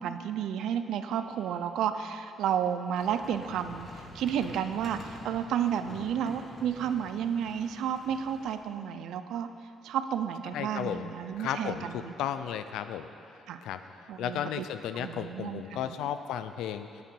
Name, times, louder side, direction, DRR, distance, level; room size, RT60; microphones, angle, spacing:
voice 1, 0.0-9.5 9.8-12.1 13.5-13.6 14.1-14.7 14.9-16.0, right 8 dB, 80° right, 9 dB, 0.4 m, -32 dB
sound 1, 2.9-8.6, left 1 dB, 40° left, 2.0 m, -48 dB
voice 2, 10.5-11.1 11.4-13.1 13.6-17.0, left 9 dB, 90° left, 10 dB, 0.4 m, -34 dB
8.5 x 7.4 x 5.4 m, 2.6 s
cardioid pair, 90°, 0 cm